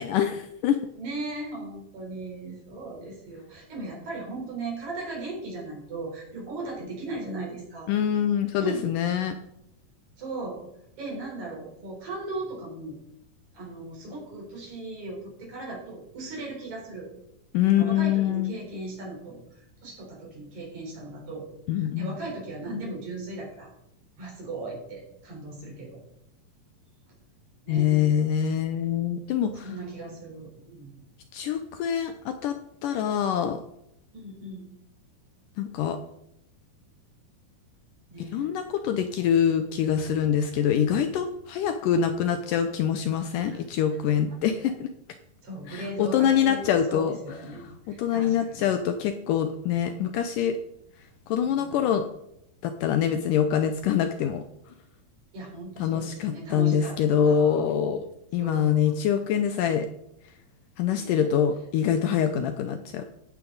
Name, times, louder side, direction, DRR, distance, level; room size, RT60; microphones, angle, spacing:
voice 1, 0.0-0.8 7.9-9.4 17.5-18.5 21.7-22.1 27.7-29.7 31.3-32.6 32.8-33.6 35.6-36.0 38.2-44.9 45.7-47.2 47.5-50.6 51.3-52.1 52.6-54.4 55.8-58.1 58.3-59.9 60.8-63.0, left 9 dB, 75° left, 8 dB, 2.0 m, -25 dB
voice 2, 1.0-7.9 8.6-8.9 10.2-10.6 11.0-13.0 13.5-17.1 17.7-19.4 19.8-21.5 21.7-23.7 24.2-26.0 27.6-28.0 29.5-31.0 34.1-34.7 38.1-38.5 43.5-43.6 45.4-46.6 46.9-48.7 51.5-51.9 55.3-57.0 57.3-57.6 58.4-58.9 60.9-61.3, right 2 dB, 55° right, -2 dB, 5.2 m, -37 dB
15.5 x 8.7 x 4.0 m, 0.81 s
omnidirectional pair, 4.2 m